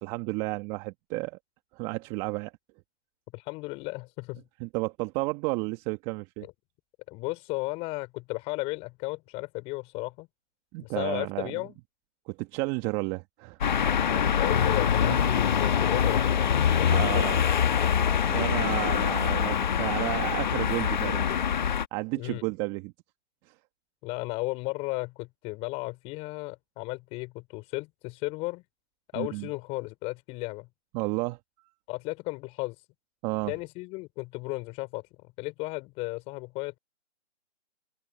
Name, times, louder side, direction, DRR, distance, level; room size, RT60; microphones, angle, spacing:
voice 1, 0.0-1.4 1.7-2.5 4.6-6.5 10.7-11.5 12.3-13.6 15.0-15.4 16.9-17.4 18.3-21.4 21.9-22.9 29.1-29.5 30.9-31.4 33.2-33.5, right 24 dB, 15° right, 1.5 m, -32 dB
voice 2, 3.3-4.4 7.1-10.3 10.8-11.8 14.1-16.3 16.7-17.5 17.8-18.0 22.2-22.4 24.0-28.6 29.1-30.7 31.9-32.7 33.5-35.0 35.4-36.8, left 24 dB, 15° left, 4.7 m, -35 dB
sound 1, 13.6-21.9, left 8 dB, 40° left, 1.3 m, -24 dB
open air
figure-of-eight pair, 155°, 37 cm